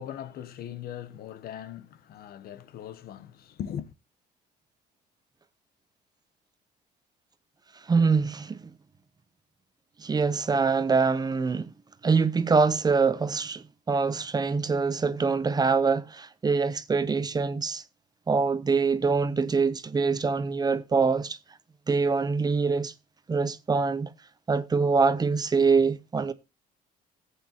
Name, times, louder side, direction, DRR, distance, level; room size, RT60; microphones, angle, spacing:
voice 1, 0.0-3.9, left 9 dB, 65° left, 0.9 m, -39 dB
voice 2, 7.9-8.6 10.0-11.7 12.0-17.8 18.3-21.4 21.9-22.9 23.3-24.1 24.5-26.3, right 4 dB, 25° right, 0.7 m, -24 dB
14.5 x 8.3 x 2.9 m
cardioid pair, 110°, 17 cm